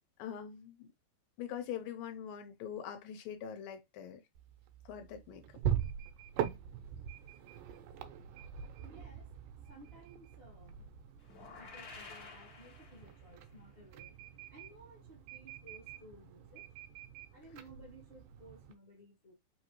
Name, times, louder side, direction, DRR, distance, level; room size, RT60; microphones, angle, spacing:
voice 1, 0.2-0.9 1.4-4.2 4.9-5.4, left 9 dB, 80° left, 2.5 m, -43 dB
sound 1, 4.3-18.7, right 9 dB, 75° right, 1.9 m, -43 dB
voice 2, 8.8-9.3 9.7-10.8 11.4-16.7 17.3-19.3, equal, 45° left, 0.7 m, -57 dB
sound 2, 11.2-13.4, left 4 dB, 65° left, 1.1 m, -51 dB
5.3 x 2.7 x 3.0 m
omnidirectional pair, 4.0 m